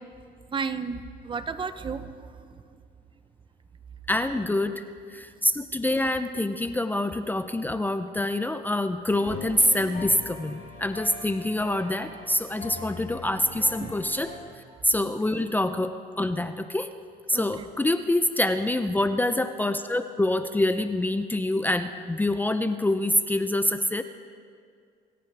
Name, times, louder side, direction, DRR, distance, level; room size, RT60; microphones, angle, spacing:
voice 1, 0.5-2.6 13.8-14.0 17.3-17.7, right 5 dB, 30° right, 11 dB, 0.7 m, -33 dB
voice 2, 4.1-4.8 5.1-16.9 17.3-24.0, left 1 dB, 10° left, 9 dB, 0.5 m, -26 dB
sound 1, 9.1-14.4, left 4 dB, 60° left, 4.0 m, -41 dB
25.5 x 15.0 x 3.4 m, 2.2 s
cardioid pair, 110°, 17 cm